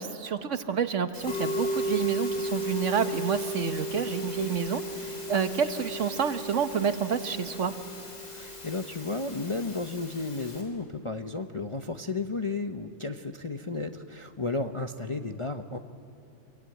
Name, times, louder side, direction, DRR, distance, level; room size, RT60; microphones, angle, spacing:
voice 1, 0.0-7.7, right 7 dB, 60° right, 10 dB, 1.4 m, -29 dB
Musical instrument, 1.1-10.6, equal, 80° left, 4.4 m, -35 dB
voice 2, 8.3-15.8, left 3 dB, 30° left, 6 dB, 0.7 m, -33 dB
26.0 x 24.0 x 9.1 m, 2.5 s
omnidirectional pair, 1.5 m